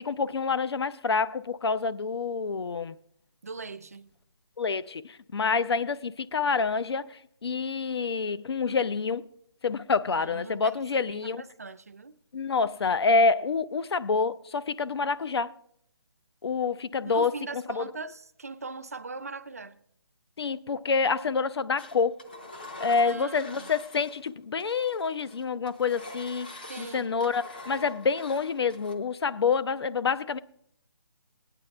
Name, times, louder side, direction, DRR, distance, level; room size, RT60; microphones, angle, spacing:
voice 1, 0.0-2.9 4.6-9.2 9.6-11.4 12.3-15.5 16.4-17.8 20.4-22.1 22.8-26.5 26.8-30.4, left 5 dB, 75° left, 0.5 m, -27 dB
voice 2, 3.4-4.1 10.2-12.1 17.0-19.8 23.0-23.7 26.6-27.1, right 4 dB, 35° right, 0.4 m, -40 dB
Engine, 21.8-24.3 24.6-28.9, left 2 dB, 20° left, 0.5 m, -45 dB
17.0 x 9.1 x 3.3 m
hypercardioid pair, 175°, 14 cm